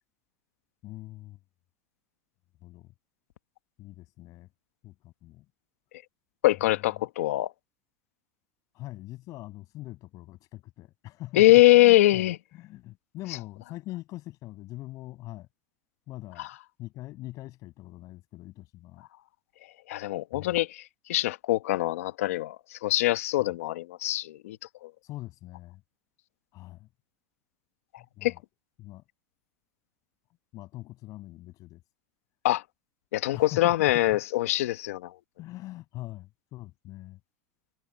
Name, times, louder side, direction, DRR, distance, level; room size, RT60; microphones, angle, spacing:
voice 1, 0.8-1.4 2.6-2.9 3.8-4.5 4.8-5.5 6.5-7.0 8.7-15.5 16.1-16.5 16.8-19.1 20.3-20.6 23.4-23.6 25.0-25.8 26.5-26.9 28.0-28.4 28.8-29.0 30.5-31.8 33.3-34.2 35.4-37.2, left 17 dB, 50° left, 7.4 m, -43 dB
voice 2, 6.4-7.5 11.4-12.4 19.9-20.8 21.1-24.6 24.8-24.9 28.2-28.3 32.4-32.6 33.1-35.1, left 16 dB, 85° left, 1.2 m, -23 dB
supercardioid pair, 115°, 8 cm